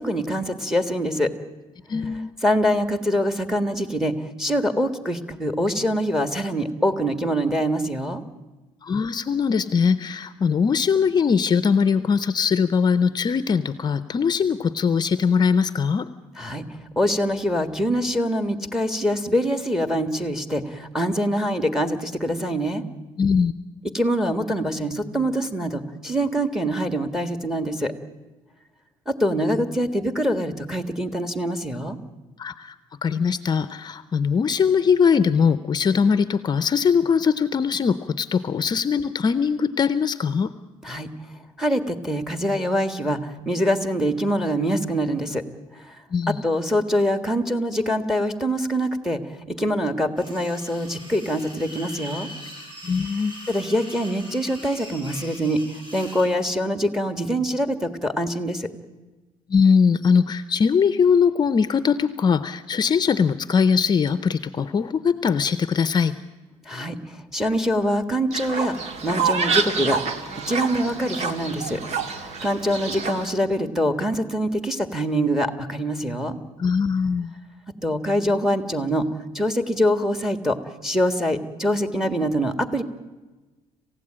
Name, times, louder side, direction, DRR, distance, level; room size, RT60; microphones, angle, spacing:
voice 1, 0.0-1.3 2.4-8.2 16.4-22.8 23.9-27.9 29.0-32.0 40.8-41.1 41.6-45.4 45.7-45.9 46.3-52.3 53.5-58.7 66.6-71.8 72.1-76.4 77.8-79.1 79.3-80.6 80.8-82.8, equal, 5° right, 9 dB, 1.7 m, -24 dB
voice 2, 1.9-2.4 8.8-16.1 23.2-23.5 32.4-32.7 33.0-40.5 46.1-46.4 52.8-53.3 59.5-66.1 76.6-77.4, left 6 dB, 35° left, 13 dB, 0.7 m, -21 dB
sound 1, 50.2-56.3, equal, 40° right, 7.9 m, -41 dB
Fowl, 68.3-73.3, right 5 dB, 65° right, 1.9 m, -27 dB
27.0 x 16.0 x 8.8 m, 1.2 s
cardioid pair, 130°, 12 cm